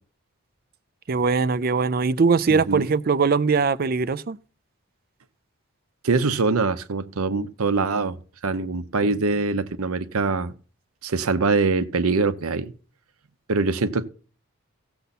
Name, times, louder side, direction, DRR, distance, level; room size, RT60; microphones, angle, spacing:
voice 1, 1.1-4.4, right 5 dB, 40° right, 0.4 m, -21 dB
voice 2, 2.5-2.9 6.0-8.2 8.4-10.5 11.0-12.7 13.5-14.1, right 3 dB, 85° right, 0.8 m, -23 dB
16.0 x 6.8 x 4.2 m
head